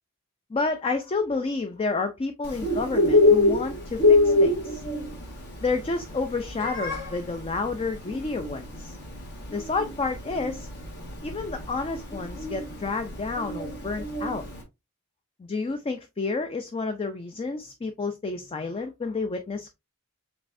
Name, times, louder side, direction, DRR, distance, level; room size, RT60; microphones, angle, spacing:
voice 1, 0.5-4.8 5.6-9.0 9.5-10.7 11.2-14.5 15.4-19.7, left 3 dB, 25° left, 0.4 m, -30 dB
Bird, 2.4-14.6, left 2 dB, 50° left, 1.6 m, -25 dB
5.2 x 3.5 x 2.5 m
head